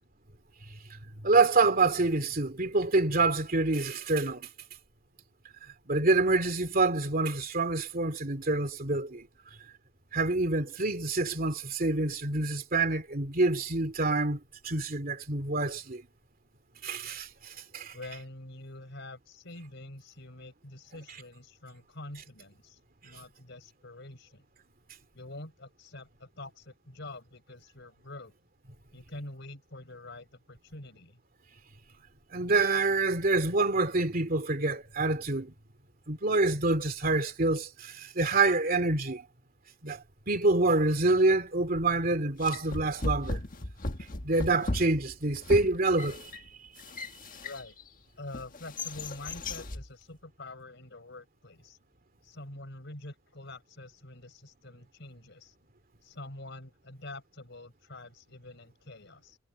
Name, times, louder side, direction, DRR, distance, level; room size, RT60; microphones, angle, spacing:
voice 1, 1.2-4.5 5.9-9.3 10.1-16.0 16.8-17.9 32.3-35.5 36.1-39.2 39.8-43.4 44.2-46.3, right 3 dB, 45° right, 2.6 m, -27 dB
voice 2, 17.9-24.5 25.1-28.3 28.9-31.2 47.4-47.8 48.2-51.8 52.2-55.6 56.0-59.4, left 2 dB, 60° left, 5.4 m, -46 dB
sound 1, 41.7-42.0 42.4-47.9 48.3-49.9, left 2 dB, 45° left, 1.6 m, -37 dB
head